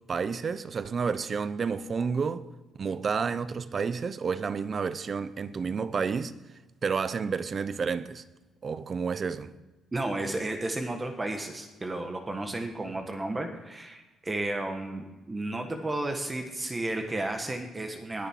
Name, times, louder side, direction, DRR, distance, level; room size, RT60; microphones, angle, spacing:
voice 1, 0.1-2.5 2.8-6.3 6.8-8.2 8.6-9.5, right 5 dB, 45° right, 0.7 m, -30 dB
voice 2, 9.9-18.3, right 2 dB, 20° right, 1.4 m, -33 dB
19.5 x 6.9 x 4.5 m
cardioid pair, 90°, 0 cm